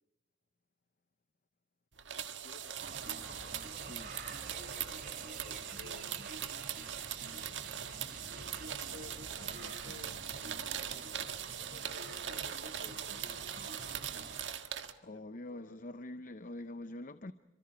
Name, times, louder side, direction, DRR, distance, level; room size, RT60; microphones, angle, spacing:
sound 1, 2.0-14.9, right 9 dB, 90° right, 1.7 m, -41 dB
voice 1, 2.4-2.8 5.2-6.3 8.6-10.2 10.6-13.7 15.1-15.8, left 2 dB, 80° left, 1.7 m, -57 dB
sound 2, 2.8-14.4, right 2 dB, 55° right, 5.7 m, -49 dB
voice 2, 3.8-4.1 15.0-17.3, left 1 dB, 45° left, 0.8 m, -45 dB
29.0 x 25.5 x 4.7 m
head